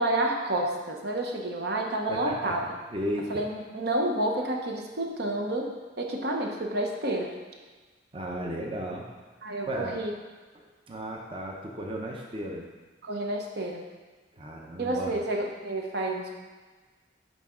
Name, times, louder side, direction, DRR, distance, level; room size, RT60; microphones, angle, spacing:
voice 1, 0.0-2.6 3.3-7.3 9.4-10.1 13.0-13.8 14.8-16.4, right 1 dB, 65° right, 1 dB, 0.9 m, -29 dB
voice 2, 2.1-2.6 2.9-3.3 8.1-9.0 9.6-10.0 10.5-12.7 14.3-15.2, equal, 30° right, -1 dB, 0.7 m, -35 dB
10.5 x 4.1 x 3.7 m, 1.4 s
head